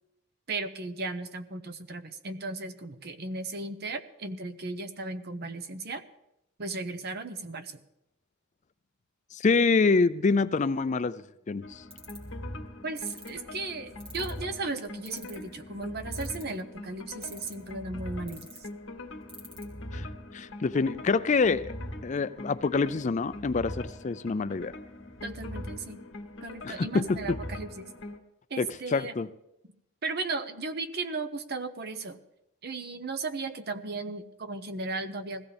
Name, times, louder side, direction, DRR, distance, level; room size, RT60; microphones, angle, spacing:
voice 1, 0.5-6.0 6.6-7.8 12.8-18.5 25.2-26.0 26.4-27.9 28.5-29.1 30.0-32.2 32.6-35.4, right 3 dB, 50° right, 1.0 m, -36 dB
voice 2, 9.3-11.8 19.9-20.1 20.3-21.7 22.0-24.7 26.6-27.4 28.6-29.3, left 4 dB, 35° left, 0.4 m, -26 dB
sound 1, 11.6-28.2, left 1 dB, 65° left, 1.9 m, -42 dB
sound 2, 11.9-12.3 13.0-13.3 14.0-14.4 15.1-15.5 16.1-16.6 17.2-17.7 18.3-18.6 19.3-19.6, right 1 dB, 30° right, 2.8 m, -45 dB
20.0 x 15.5 x 3.5 m
head